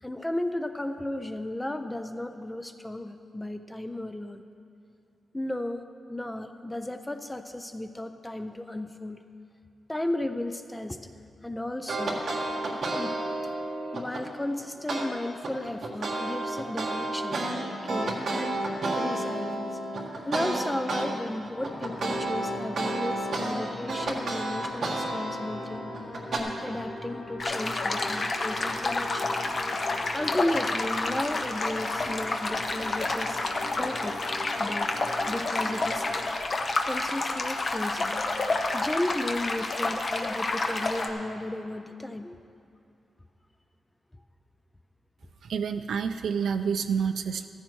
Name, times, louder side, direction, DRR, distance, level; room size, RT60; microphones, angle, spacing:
voice 1, 0.0-4.4 5.3-9.2 9.9-11.1 11.4-12.3 12.9-13.2 13.9-17.4 17.8-18.6 19.0-19.8 20.3-25.8 26.3-29.3 30.1-33.4 33.8-34.2 34.6-34.9 35.3-36.1 36.8-38.2 38.7-42.4, left 1 dB, 10° left, 8 dB, 0.3 m, -34 dB
sound 1, 11.9-14.2 14.9-15.1 15.4-21.1 21.4-26.4, right 2 dB, 50° right, 1.7 m, -31 dB
sound 2, 21.5-36.2, left 2 dB, 70° left, 1.9 m, -41 dB
sound 3, 27.4-41.1, left 2 dB, 35° left, 0.8 m, -29 dB
voice 2, 45.4-47.5, right 6 dB, 80° right, 8 dB, 0.3 m, -28 dB
15.5 x 14.0 x 3.1 m, 2.5 s
wide cardioid pair, 180°, 0 cm